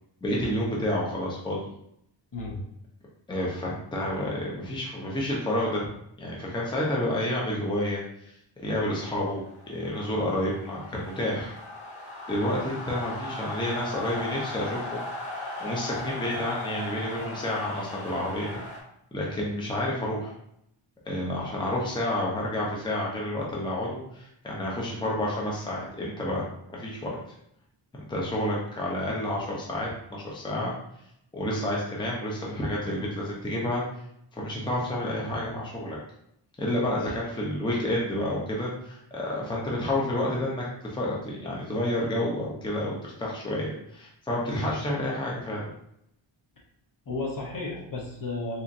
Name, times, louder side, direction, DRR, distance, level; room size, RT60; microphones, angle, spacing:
voice 1, 0.2-1.6 3.3-5.9 6.2-8.3 8.6-11.5 12.3-15.0 15.6-18.6 19.1-20.3 21.0-26.4 26.7-27.2 28.0-30.7 31.3-33.8 34.3-36.0 36.6-45.6, left 1 dB, 10° left, -4 dB, 0.7 m, -29 dB
sound 1, 8.9-18.8, left 2 dB, 80° left, 1.2 m, -38 dB
voice 2, 36.8-37.3 47.1-48.6, left 2 dB, 40° left, -2 dB, 1.0 m, -34 dB
3.9 x 3.0 x 2.6 m, 0.75 s
wide cardioid pair, 120°, 48 cm